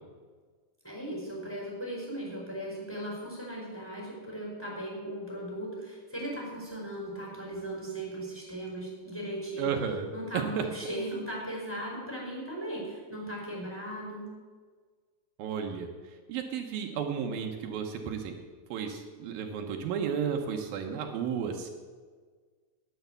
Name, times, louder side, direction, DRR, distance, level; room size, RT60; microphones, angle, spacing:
voice 1, 0.8-9.7 10.1-14.3, right 1 dB, 5° left, -3 dB, 4.5 m, -37 dB
voice 2, 9.6-10.1 10.3-10.6 15.4-15.9 16.3-18.4 18.7-21.7, right 7 dB, 80° right, 3 dB, 2.7 m, -33 dB
10.0 x 9.1 x 8.1 m, 1.5 s
omnidirectional pair, 4.2 m